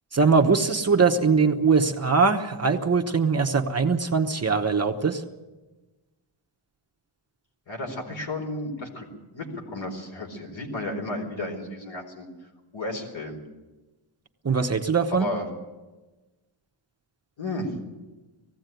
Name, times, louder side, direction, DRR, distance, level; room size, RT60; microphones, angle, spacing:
voice 1, 0.1-5.2 14.4-15.3, right 5 dB, 30° right, 3 dB, 1.0 m, -21 dB
voice 2, 7.7-9.1 9.3-12.3 12.7-13.4 15.1-15.4 17.4-17.7, left 1 dB, 60° left, 3 dB, 4.4 m, -33 dB
19.5 x 16.0 x 9.2 m, 1.2 s
wide cardioid pair, 155°, 50 cm